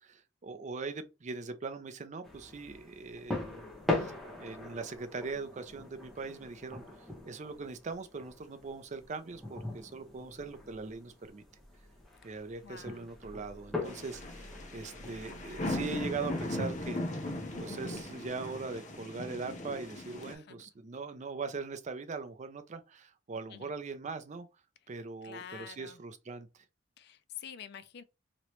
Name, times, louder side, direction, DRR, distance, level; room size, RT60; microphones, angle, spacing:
voice 1, 0.0-3.7 4.0-11.4 12.2-17.0 17.6-24.5 24.9-26.6, right 4 dB, 40° right, 0.4 m, -41 dB
sound 1, 2.2-18.1, left 2 dB, ahead, 1.0 m, -42 dB
voice 2, 12.6-13.1 20.3-20.6 23.5-23.7 25.2-26.0 27.0-28.0, left 8 dB, 60° left, 0.4 m, -47 dB
sound 2, 13.9-20.4, left 1 dB, 40° left, 0.8 m, -38 dB
3.0 x 2.9 x 3.0 m
head